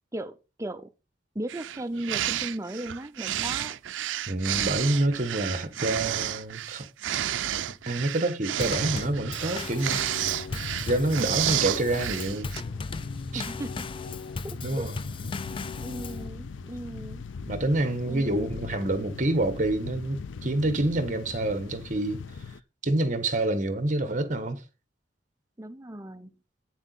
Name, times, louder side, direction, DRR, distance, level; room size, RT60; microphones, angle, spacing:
voice 1, 0.1-0.9 1.3-3.8 5.9-6.0 13.3-14.2 14.4-14.9 15.8-17.2 18.1-18.6 25.6-26.3, right 1 dB, 15° right, 0.6 m, -37 dB
sound 1, 1.5-12.6, right 12 dB, 90° right, 0.4 m, -31 dB
voice 2, 4.3-6.9 7.9-10.3 10.7-12.5 13.3-13.4 14.6-15.0 17.5-22.2 22.8-24.6, right 2 dB, 45° right, 1.4 m, -27 dB
Drum kit / Snare drum / Bass drum, 8.6-16.3, left 4 dB, 30° left, 0.4 m, -37 dB
sound 2, 10.1-22.6, left 4 dB, 90° left, 0.5 m, -40 dB
9.2 x 7.2 x 4.1 m
head